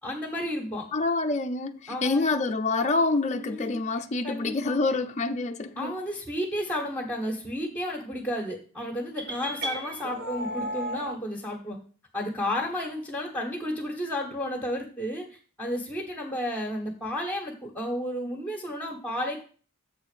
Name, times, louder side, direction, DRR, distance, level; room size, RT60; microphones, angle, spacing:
voice 1, 0.0-0.9 1.9-2.3 3.3-4.8 5.8-11.8 12.1-19.4, equal, 10° left, 1.5 m, -32 dB
voice 2, 0.9-6.0, left 3 dB, 35° left, 0.5 m, -27 dB
sound 1, 9.2-11.2, equal, 50° right, 1.8 m, -34 dB
7.5 x 4.2 x 6.7 m
head